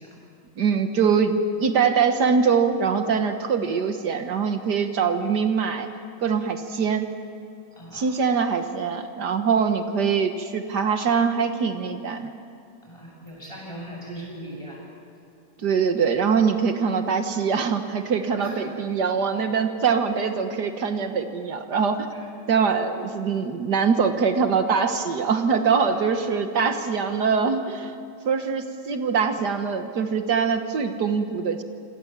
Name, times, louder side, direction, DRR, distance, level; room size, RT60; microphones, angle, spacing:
voice 1, 0.6-5.9 6.2-7.1 7.9-12.3 15.6-22.1 22.5-27.9 28.3-31.6, right 6 dB, 75° right, 7 dB, 1.8 m, -23 dB
voice 2, 12.9-14.8 18.4-18.5, right 1 dB, 15° left, -3 dB, 8.2 m, -38 dB
27.5 x 26.0 x 7.4 m, 2.5 s
omnidirectional pair, 1.8 m